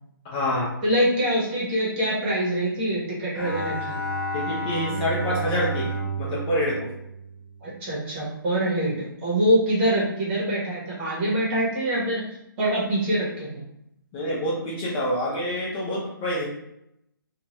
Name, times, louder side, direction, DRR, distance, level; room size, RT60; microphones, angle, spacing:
voice 1, 0.3-0.7 4.3-5.9 6.2-7.0 14.1-16.5, left 1 dB, 25° left, -7 dB, 0.7 m, -26 dB
voice 2, 0.8-3.9 7.6-12.2 12.6-13.6, right 1 dB, 30° right, -6 dB, 1.1 m, -24 dB
Bowed string instrument, 3.3-7.8, right 2 dB, 60° left, 0.9 m, -31 dB
2.6 x 2.4 x 3.0 m, 0.79 s
hypercardioid pair, 150°, 12 cm